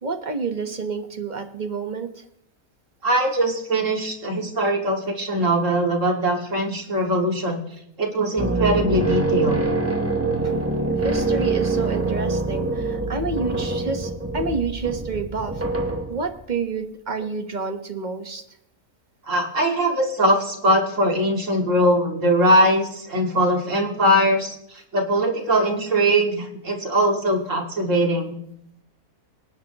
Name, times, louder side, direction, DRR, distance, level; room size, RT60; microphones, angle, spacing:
voice 1, 0.0-2.3 11.0-15.6 16.1-18.4, right 4 dB, 30° right, 6 dB, 1.2 m, -29 dB
voice 2, 3.0-7.6 8.0-9.6 19.3-28.4, right 1 dB, 55° right, 1 dB, 2.6 m, -21 dB
sound 1, 8.4-16.4, right 3 dB, 15° right, 0.7 m, -24 dB
25.5 x 10.0 x 3.0 m, 0.76 s
omnidirectional pair, 1.6 m